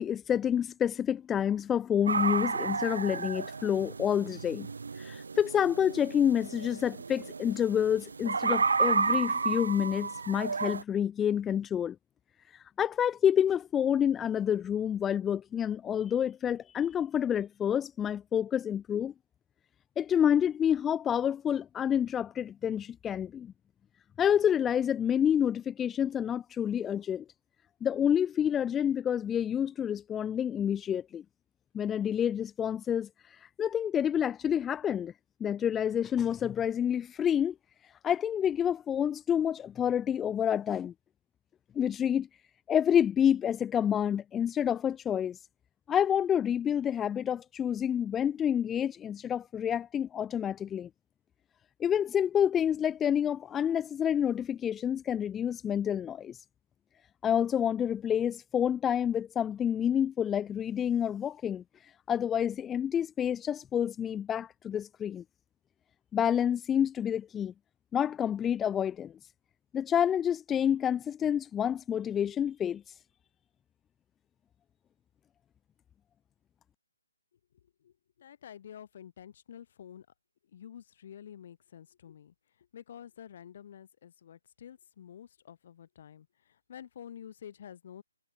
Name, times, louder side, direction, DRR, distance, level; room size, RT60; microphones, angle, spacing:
voice 1, 0.0-4.7 5.0-12.0 12.5-19.1 20.0-23.5 24.2-27.2 27.8-31.2 31.7-35.1 35.4-37.5 38.0-40.9 41.8-42.3 42.7-45.4 45.9-50.9 51.8-56.4 57.2-65.2 66.1-67.5 67.9-69.1 69.7-73.0, left 9 dB, 10° left, 0.4 m, -28 dB
sound 1, 2.1-10.8, right 4 dB, 70° right, 0.6 m, -32 dB
voice 2, 78.2-80.1 80.5-82.3 82.7-86.3 86.7-88.0, left 9 dB, 45° left, 0.9 m, -49 dB
hypercardioid pair, 150°, 0 cm